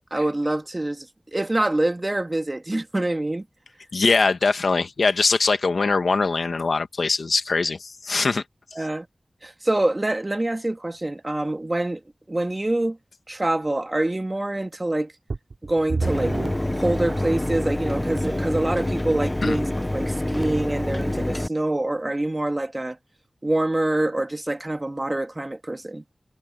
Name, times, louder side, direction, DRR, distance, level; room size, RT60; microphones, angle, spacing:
voice 1, 0.1-1.1 1.3-3.4 8.7-9.1 9.4-12.0 12.3-13.0 13.3-15.1 15.6-16.3 16.7-23.0 23.4-26.0, right 1 dB, 35° right, 2.3 m, -25 dB
voice 2, 3.9-8.4 19.4-19.6, left 4 dB, 90° left, 1.6 m, -22 dB
sound 1, 15.3-17.7 18.4-18.5 19.1-19.2, right 3 dB, 85° right, 2.9 m, -31 dB
Mechanisms, 16.0-21.5, left 1 dB, 20° left, 0.6 m, -26 dB
wide cardioid pair, 50°, 0 cm